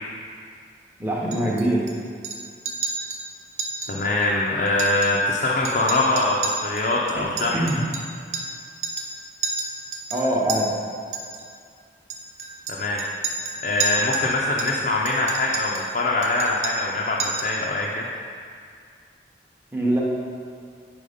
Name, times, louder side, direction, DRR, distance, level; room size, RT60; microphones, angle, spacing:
voice 1, 1.0-1.8 7.5-7.8 10.1-10.7 19.7-20.0, right 1 dB, 10° right, -4 dB, 0.8 m, -23 dB
Chink clink, 1.3-1.9 2.2-2.4 2.6-3.2 3.6-3.9 4.2-4.3 4.7-5.4 5.6-8.6 8.8-9.1 9.4-10.6 11.1-11.4 12.1-14.3 14.6-15.9 16.2-16.9 17.2-17.6, right 4 dB, 40° right, 0.5 m, -30 dB
voice 2, 3.9-7.6 12.7-13.0 13.6-18.1, left 2 dB, 45° left, -3 dB, 0.5 m, -23 dB
5.4 x 4.6 x 5.0 m, 2.2 s
head